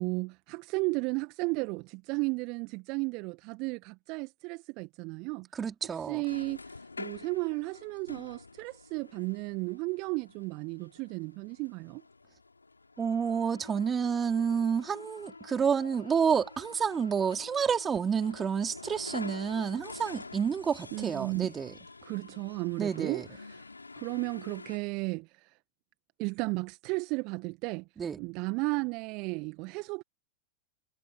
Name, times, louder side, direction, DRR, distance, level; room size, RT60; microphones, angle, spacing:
voice 1, 0.0-5.5 5.9-12.0 20.9-21.5 22.0-23.7 24.0-25.6 26.2-27.9 28.2-30.0, right 28 dB, 45° right, 1.5 m, -34 dB
voice 2, 5.5-6.2 13.0-21.7 22.8-23.2 28.0-28.2, right 7 dB, 20° right, 3.9 m, -29 dB
sound 1, 6.1-24.8, left 3 dB, 80° left, 4.5 m, -47 dB
figure-of-eight pair, 90°, 0 cm